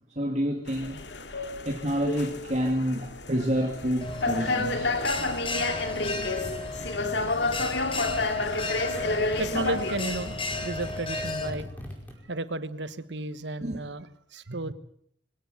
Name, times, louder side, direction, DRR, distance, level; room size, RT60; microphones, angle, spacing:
voice 1, 0.2-1.0 1.6-4.9 13.6-13.8, equal, 40° right, 2.5 m, -28 dB
sound 1, 0.7-11.0, left 3 dB, 65° left, 2.2 m, -30 dB
Bell, 4.0-11.5, left 2 dB, 30° left, 3.1 m, -34 dB
sound 2, 5.6-12.1, equal, 10° left, 5.2 m, -43 dB
voice 2, 9.4-10.3 10.6-11.7 12.3-14.7, right 2 dB, 70° right, 1.4 m, -33 dB
23.5 x 17.0 x 8.1 m
head